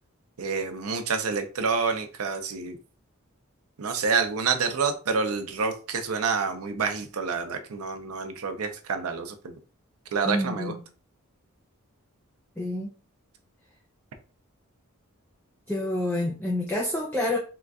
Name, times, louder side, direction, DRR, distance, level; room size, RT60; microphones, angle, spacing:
voice 1, 0.4-2.8 3.8-9.6 10.1-10.7, right 5 dB, 85° right, 0.6 m, -28 dB
voice 2, 10.3-10.7 12.6-12.9 15.7-17.4, left 1 dB, 10° left, 0.4 m, -28 dB
3.8 x 2.4 x 2.3 m
head